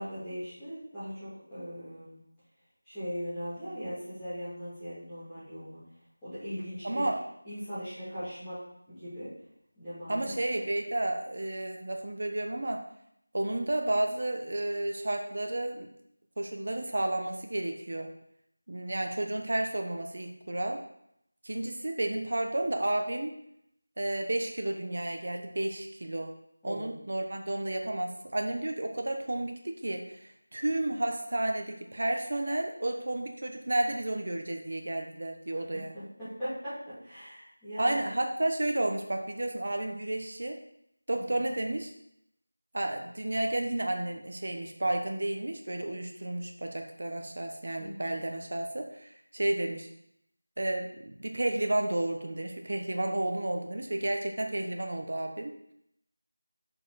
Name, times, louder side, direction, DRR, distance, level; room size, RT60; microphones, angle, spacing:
voice 1, 0.0-2.2 2.8-5.8 6.2-7.0 7.4-8.6 8.9-9.3 9.8-10.6 26.6-26.9 35.5-35.6 36.4-36.7 37.0-38.1 41.1-41.2 47.8-48.1, equal, 5° left, -18 dB, 2.8 m, -39 dB
voice 2, 6.8-7.2 10.1-12.8 13.3-15.9 16.4-18.1 18.7-20.8 21.4-23.3 24.0-26.3 26.6-35.9 37.8-40.6 41.1-41.9 42.7-49.9 50.6-55.5, right 1 dB, 40° right, 4 dB, 1.1 m, -32 dB
7.3 x 6.9 x 4.2 m, 0.76 s
figure-of-eight pair, 180°, 0 cm